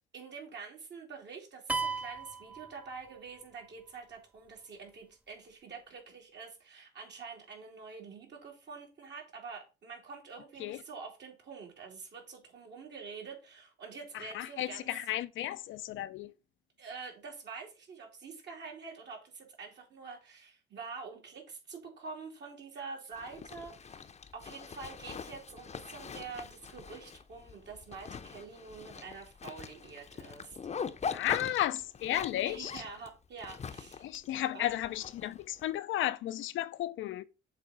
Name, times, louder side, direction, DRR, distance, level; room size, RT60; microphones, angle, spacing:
voice 1, 0.1-14.9 16.8-24.1 24.3-30.6 32.4-34.1 34.5-34.8, right 5 dB, 60° right, 2.9 m, -46 dB
sound 1, 1.7-3.4, right 4 dB, 5° right, 0.5 m, -36 dB
voice 2, 14.1-16.3 31.1-32.8 34.0-37.2, left 13 dB, 80° left, 0.5 m, -34 dB
Zipper (clothing), 23.1-35.6, left 6 dB, 35° left, 0.7 m, -43 dB
7.4 x 3.6 x 5.0 m
cardioid pair, 90°, 20 cm